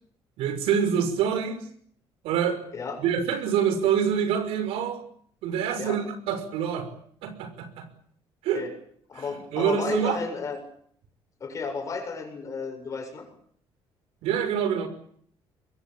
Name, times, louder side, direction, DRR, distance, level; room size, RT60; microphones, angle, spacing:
voice 1, 0.4-1.6 2.2-2.6 3.0-5.0 5.4-6.9 7.2-7.9 8.4-8.6 9.2-10.2 14.2-14.9, right 8 dB, 90° right, 10 dB, 5.8 m, -26 dB
voice 2, 2.7-3.0 5.8-6.0 8.5-8.7 9.1-10.6 11.4-13.3, left 5 dB, 35° left, 6 dB, 7.4 m, -33 dB
25.5 x 22.0 x 8.9 m, 0.63 s
cardioid pair, 150°, 10 cm